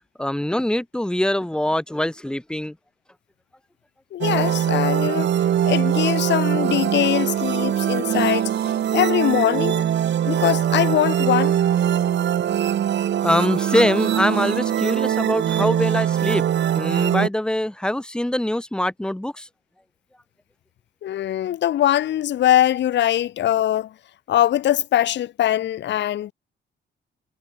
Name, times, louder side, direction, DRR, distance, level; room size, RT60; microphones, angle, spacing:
voice 1, 0.2-2.8 13.2-16.4 16.7-19.5, left 1 dB, 5° left, 1.3 m, -23 dB
voice 2, 4.1-5.3 5.6-8.5 8.9-9.9 10.2-11.6 21.0-23.9 24.3-26.3, left 12 dB, 65° left, 0.9 m, -21 dB
sound 1, 4.2-17.3, right 10 dB, 65° right, 3.5 m, -22 dB
cardioid pair, 90°, 20 cm